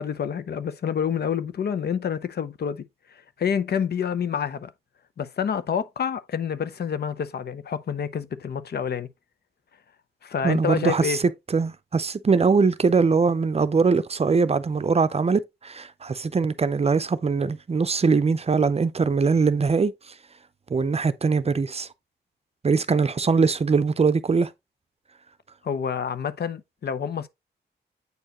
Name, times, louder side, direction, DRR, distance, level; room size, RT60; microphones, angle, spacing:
voice 1, 0.0-2.9 3.1-4.7 5.2-9.1 10.2-11.2 25.6-27.3, left 7 dB, 60° left, 0.6 m, -28 dB
voice 2, 10.4-11.2 11.5-19.9 20.7-21.9 22.6-24.5, right 4 dB, 35° right, 0.6 m, -22 dB
8.1 x 4.4 x 2.9 m
cardioid pair, 70°, 18 cm